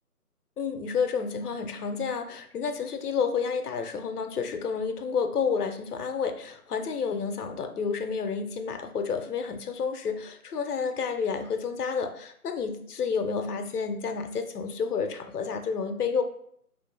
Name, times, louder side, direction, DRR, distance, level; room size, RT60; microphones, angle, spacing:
voice 1, 0.6-16.2, left 5 dB, 80° left, 7 dB, 0.6 m, -30 dB
3.8 x 2.5 x 2.3 m, 0.67 s
figure-of-eight pair, 160°, 46 cm